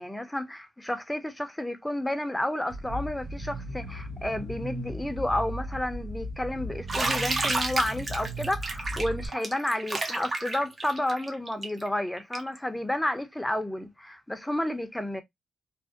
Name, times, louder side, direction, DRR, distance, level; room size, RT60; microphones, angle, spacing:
voice 1, 0.0-15.2, left 1 dB, 10° left, 0.5 m, -31 dB
sound 1, 2.7-9.3, equal, 80° right, 0.8 m, -37 dB
Bathtub (filling or washing), 6.9-12.6, right 2 dB, 45° right, 0.7 m, -31 dB
2.5 x 2.1 x 2.4 m
supercardioid pair, 50°, 0 cm